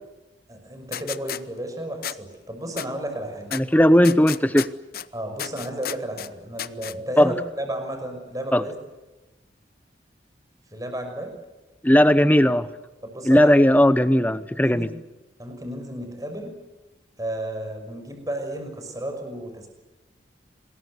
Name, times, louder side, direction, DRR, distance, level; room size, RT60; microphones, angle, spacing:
voice 1, 0.5-3.6 5.1-8.7 10.7-11.3 13.0-13.5 14.5-14.9 15.4-16.5 17.2-19.7, right 1 dB, 20° right, 5 dB, 5.8 m, -33 dB
sound 1, 0.9-1.4 2.0-2.2 2.8-2.9 3.5-3.6 4.0-5.1 5.4-6.3 6.6-6.9, left 10 dB, 50° left, 0.8 m, -32 dB
voice 2, 3.5-4.7 7.2-7.3 8.5-8.6 11.8-12.7 13.2-14.9, equal, 10° left, 13 dB, 0.9 m, -17 dB
27.0 x 21.5 x 8.2 m, 1.1 s
head